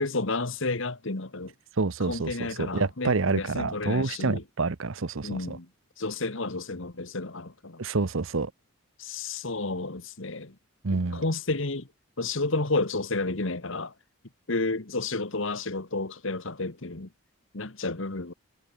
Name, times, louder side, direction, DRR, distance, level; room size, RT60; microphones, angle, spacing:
voice 1, 0.0-1.5 2.0-4.4 5.2-5.7 6.0-7.8 9.0-10.6 10.9-11.9 12.2-13.9 14.5-17.1 17.5-18.3, left 3 dB, 60° left, 1.5 m, -31 dB
voice 2, 1.8-5.6 7.8-8.5 10.8-11.2, right 3 dB, 65° right, 0.8 m, -28 dB
head